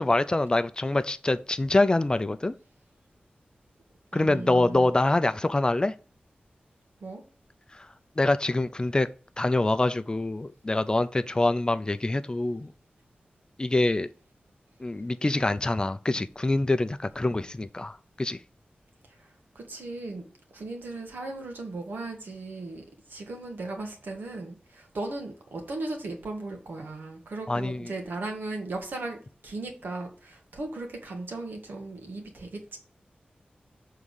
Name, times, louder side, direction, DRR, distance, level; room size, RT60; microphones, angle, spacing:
voice 1, 0.0-2.5 4.1-5.9 7.7-7.9 8.2-9.1 9.4-12.7 13.6-14.1 14.8-18.4 27.5-27.9, left 2 dB, 25° left, 0.4 m, -25 dB
voice 2, 4.1-5.0 7.0-7.2 19.1-19.3 19.5-29.2 29.4-32.8, right 2 dB, 90° right, 1.7 m, -37 dB
7.0 x 3.7 x 6.4 m
wide cardioid pair, 105°, 3 cm